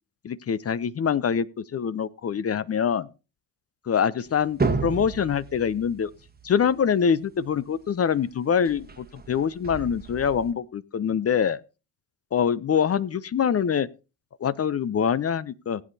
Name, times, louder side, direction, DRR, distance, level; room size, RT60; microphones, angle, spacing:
voice 1, 0.2-3.1 3.9-6.1 6.4-11.6 12.3-13.9 14.4-15.8, left 7 dB, 35° left, 0.6 m, -24 dB
sound 1, 4.3-7.5 8.7-10.5, right 4 dB, 20° right, 1.3 m, -32 dB
18.5 x 8.4 x 2.7 m
hypercardioid pair, 55°, 45 cm